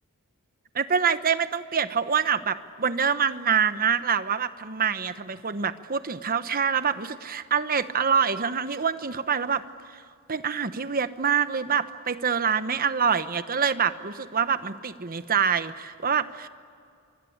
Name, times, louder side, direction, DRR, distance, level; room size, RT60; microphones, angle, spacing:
voice 1, 0.7-9.6 10.3-16.5, right 6 dB, 40° right, 12 dB, 1.0 m, -25 dB
25.5 x 25.5 x 8.7 m, 2.3 s
head